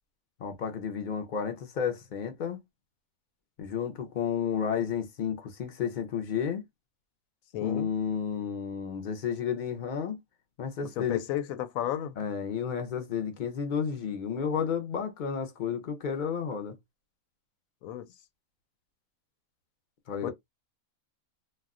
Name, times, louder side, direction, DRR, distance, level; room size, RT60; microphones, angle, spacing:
voice 1, 0.4-2.6 3.6-6.6 7.6-10.2 10.6-11.2 12.2-16.8 20.1-20.3, left 7 dB, 55° left, 0.5 m, -32 dB
voice 2, 7.5-7.9 10.8-12.2 17.8-18.1 20.2-20.3, left 11 dB, 80° left, 1.0 m, -33 dB
2.3 x 2.2 x 3.6 m
omnidirectional pair, 1.5 m